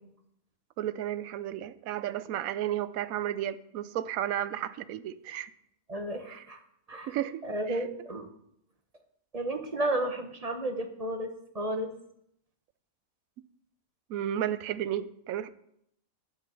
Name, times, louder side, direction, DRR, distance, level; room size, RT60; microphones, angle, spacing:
voice 1, 0.8-5.5 7.1-7.4 7.7-7.8 14.1-15.5, right 11 dB, 85° right, 15 dB, 1.0 m, -33 dB
voice 2, 5.9-6.6 6.9-7.2 7.4-8.3 9.3-11.3 11.5-11.9, right 1 dB, 30° right, 6 dB, 1.0 m, -32 dB
9.7 x 7.3 x 6.7 m, 0.75 s
omnidirectional pair, 1.4 m